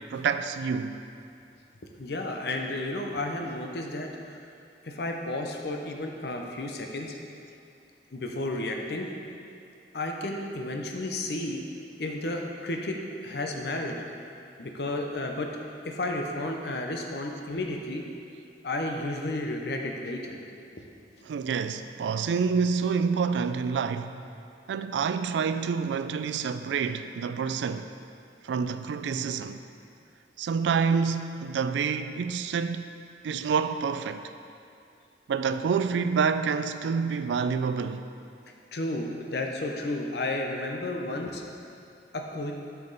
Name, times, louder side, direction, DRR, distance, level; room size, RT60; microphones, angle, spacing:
voice 1, 0.1-1.0 21.3-24.2 24.7-27.9 28.4-29.6 30.4-32.9 33.2-34.3 35.3-38.1, right 6 dB, 85° right, 0.3 m, -28 dB
voice 2, 2.0-4.4 4.8-7.1 8.1-9.1 9.9-11.6 12.0-14.0 14.6-15.5 15.8-18.0 18.6-20.4 38.7-41.4 42.1-42.5, left 2 dB, 65° left, 0.7 m, -32 dB
7.3 x 5.8 x 4.0 m
head